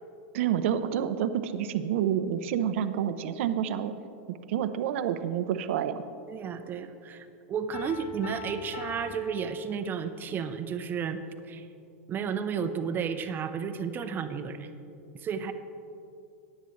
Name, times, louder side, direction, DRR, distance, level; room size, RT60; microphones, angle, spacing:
voice 1, 0.3-4.0 4.3-6.0, right 9 dB, 65° right, 11 dB, 0.6 m, -28 dB
voice 2, 6.3-11.2 11.5-11.6 12.1-14.7 15.2-15.5, right 6 dB, 30° right, 8 dB, 0.7 m, -32 dB
Piano, 7.7-10.3, left 5 dB, 75° left, 1.6 m, -42 dB
14.5 x 10.0 x 3.2 m, 2.6 s
hypercardioid pair, 120°, 7 cm